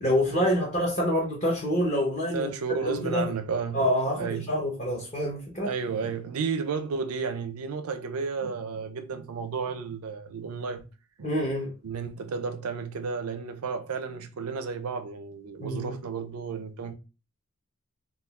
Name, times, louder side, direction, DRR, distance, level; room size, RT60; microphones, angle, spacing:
voice 1, 0.0-2.5 2.9-3.3 3.7-5.7 11.2-11.7 15.6-16.0, equal, 30° left, 0.7 m, -26 dB
voice 2, 2.3-3.8 4.1-4.5 5.6-10.8 11.2-11.3 11.8-16.9, right 5 dB, 80° right, 0.5 m, -32 dB
3.6 x 2.3 x 2.3 m
head